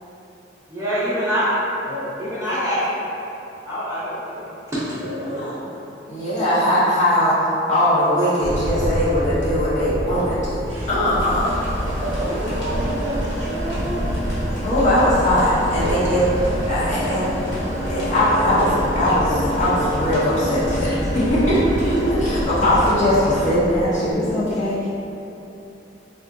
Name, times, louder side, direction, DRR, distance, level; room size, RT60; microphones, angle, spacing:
voice 1, 0.7-1.4 2.2-2.8 3.6-4.5, equal, 15° right, -13 dB, 0.7 m, -25 dB
voice 2, 1.9-2.4 5.2-5.6 6.1-7.4 7.7-11.6 14.6-16.3 16.6-17.3 17.9-24.9, left 1 dB, 40° left, -9 dB, 0.7 m, -20 dB
voice 3, 4.9-5.7 11.8-14.0 15.7-16.0, right 1 dB, 75° right, -3 dB, 0.6 m, -30 dB
sound 1, 8.4-24.1, equal, 40° right, 0.8 m, -29 dB
sound 2, 11.1-23.5, equal, 85° left, 1.2 m, -29 dB
3.7 x 2.3 x 2.6 m, 2.9 s
head